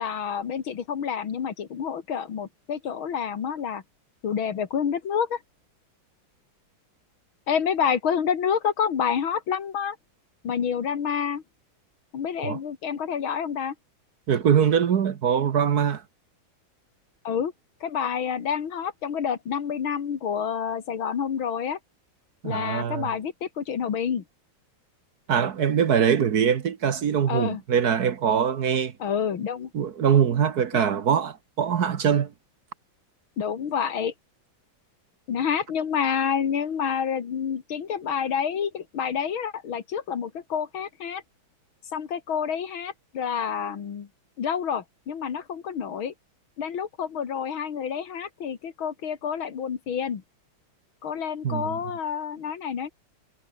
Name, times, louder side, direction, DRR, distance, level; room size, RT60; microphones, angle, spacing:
voice 1, 0.0-3.8 4.2-5.4 7.5-10.0 10.4-11.4 12.1-13.7 17.2-17.5 17.8-21.8 22.4-24.2 27.3-27.6 29.0-29.7 30.7-30.8 33.4-34.1 35.3-41.2 41.9-44.1 44.4-46.1 46.6-50.2 51.0-52.9, left 7 dB, 80° left, 2.7 m, -28 dB
voice 2, 14.3-16.0 22.4-23.1 25.3-28.9 29.7-32.3 51.4-51.8, right 8 dB, 55° right, 1.5 m, -23 dB
omnidirectional pair, 2.2 m